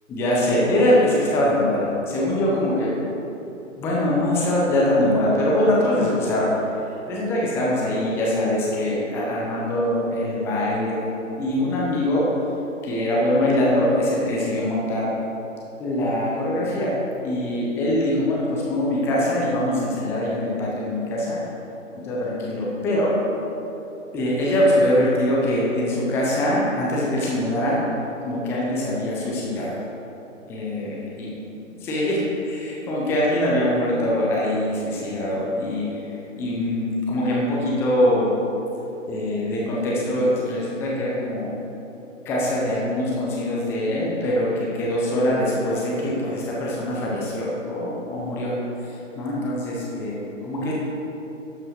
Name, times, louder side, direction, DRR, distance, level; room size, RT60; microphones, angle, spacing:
voice 1, 0.1-2.9 3.8-6.5 7.1-11.0 11.4-12.3 12.8-15.1 15.8-17.0 17.2-21.4 22.0-23.2 24.1-27.8 28.2-29.8 30.5-31.3 31.8-32.2 32.5-36.0 36.4-38.3 39.1-41.5 42.2-48.5 48.9-50.7, left 1 dB, 5° left, -5 dB, 0.8 m, -23 dB
12.0 x 7.8 x 4.7 m, 3.0 s
figure-of-eight pair, 140°, 39 cm